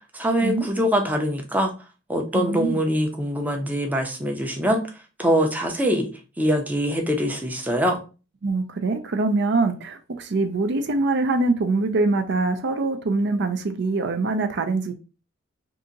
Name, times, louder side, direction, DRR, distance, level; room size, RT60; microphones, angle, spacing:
voice 1, 0.1-1.7 2.1-4.8 5.2-6.1 6.4-8.0, equal, 10° right, 0.6 m, -23 dB
voice 2, 2.3-2.8 8.4-14.9, right 3 dB, 60° right, 0.5 m, -24 dB
2.8 x 2.5 x 3.7 m
head